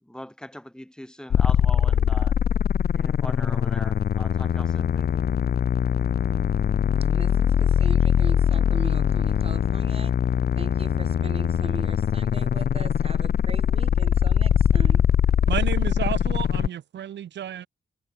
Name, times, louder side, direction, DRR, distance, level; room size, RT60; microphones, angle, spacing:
voice 1, 0.0-2.4 2.9-5.2, equal, 5° left, 3.1 m, -40 dB
sound 1, 1.3-16.7, left 8 dB, 55° left, 0.6 m, -22 dB
voice 2, 7.1-10.2 10.5-15.0, right 4 dB, 30° right, 1.6 m, -40 dB
voice 3, 15.5-17.7, right 10 dB, 65° right, 0.6 m, -31 dB
wide cardioid pair, 170°, 20 cm